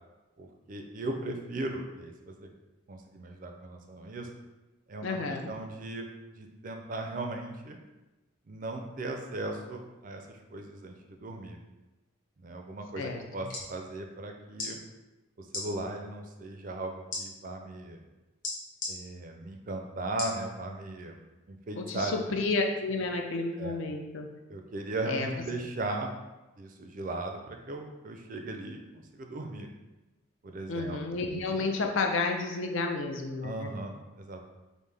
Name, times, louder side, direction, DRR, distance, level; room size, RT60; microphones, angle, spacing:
voice 1, 0.4-2.5 2.9-4.3 4.9-6.1 6.4-7.8 8.5-11.6 12.4-14.8 15.4-18.0 18.9-21.2 21.5-22.2 23.6-23.8 24.5-26.1 26.6-29.7 30.4-31.0 33.4-34.5, right 2 dB, 40° right, 3 dB, 0.4 m, -37 dB
voice 2, 5.0-5.5 13.0-13.2 21.8-24.3 25.1-25.3 30.7-33.7, left 3 dB, 65° left, 3 dB, 0.5 m, -31 dB
sound 1, 13.2-13.7 14.5-14.7 15.5-15.7 17.1-17.2 18.4-18.9 20.2-20.4 21.0-21.1, left 2 dB, 40° left, 1.1 m, -35 dB
5.3 x 2.1 x 3.3 m, 1.1 s
head